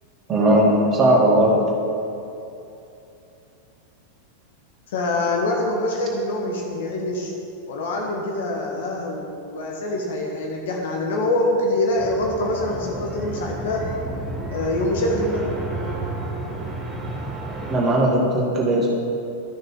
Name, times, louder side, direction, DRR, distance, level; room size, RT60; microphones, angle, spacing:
voice 1, 0.3-1.6 17.7-18.9, right 1 dB, 25° right, -3 dB, 2.0 m, -18 dB
voice 2, 4.9-7.3 7.7-13.9 14.5-15.5, left 1 dB, 55° left, 0 dB, 1.2 m, -24 dB
sound 1, 12.0-17.8, right 2 dB, 5° right, 1.3 m, -31 dB
12.5 x 6.4 x 3.8 m, 2.8 s
figure-of-eight pair, 90°, 0 cm